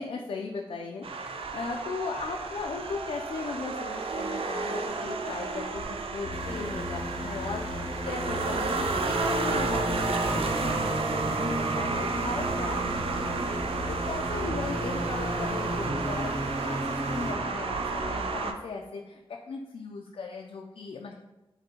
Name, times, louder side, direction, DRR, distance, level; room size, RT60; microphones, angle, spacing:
voice 1, 0.0-13.4 14.0-19.2 19.5-21.2, left 4 dB, 70° left, 1 dB, 0.4 m, -37 dB
sound 1, 1.0-18.5, right 3 dB, 70° right, 0.4 m, -31 dB
sound 2, 6.2-17.4, equal, 90° right, 1.1 m, -35 dB
Wind instrument woodwind instrument, 10.5-18.0, right 1 dB, 35° right, 0.7 m, -53 dB
5.0 x 2.7 x 2.8 m, 1.0 s
wide cardioid pair, 115°, 10 cm